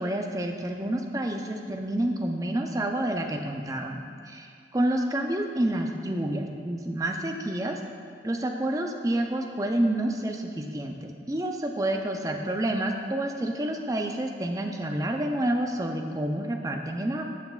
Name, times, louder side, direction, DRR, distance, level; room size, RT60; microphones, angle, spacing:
voice 1, 0.0-7.8 8.2-17.2, right 1 dB, 20° right, 3 dB, 0.5 m, -29 dB
13.5 x 5.8 x 2.4 m, 2.2 s
head